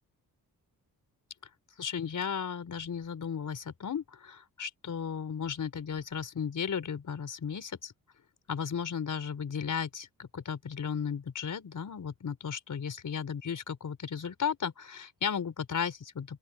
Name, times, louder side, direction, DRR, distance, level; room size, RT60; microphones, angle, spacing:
voice 1, 1.8-7.9 8.5-16.4, left 7 dB, 55° left, 5.0 m, -35 dB
open air
cardioid pair, 105°, 36 cm